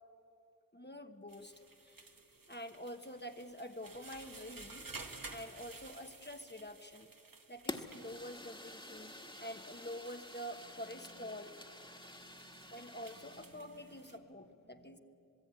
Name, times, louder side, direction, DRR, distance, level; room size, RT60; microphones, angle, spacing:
voice 1, 0.7-2.1 2.5-4.9 5.3-7.1 7.5-11.6 12.7-15.0, equal, 30° left, 6 dB, 1.2 m, -47 dB
sound 1, 1.3-14.2, right 3 dB, 85° right, 1.8 m, -54 dB
Fire, 7.7-13.6, left 1 dB, 15° left, 1.7 m, -49 dB
voice 2, 11.6-15.0, right 2 dB, 30° right, 4 dB, 1.9 m, -65 dB
26.5 x 21.0 x 9.6 m, 2.9 s
wide cardioid pair, 50°, 33 cm